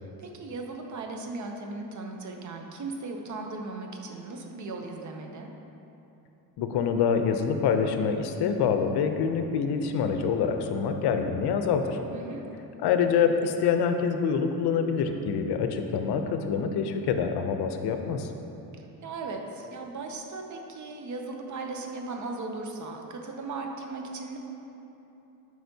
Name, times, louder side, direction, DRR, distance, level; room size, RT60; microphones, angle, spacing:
voice 1, 0.0-5.5 12.1-12.5 18.7-24.4, right 3 dB, 50° right, 3 dB, 0.6 m, -37 dB
voice 2, 6.6-12.0 12.8-18.3, left 6 dB, 85° left, 6 dB, 0.5 m, -26 dB
7.8 x 4.9 x 2.7 m, 3.0 s
cardioid pair, 125°, 38 cm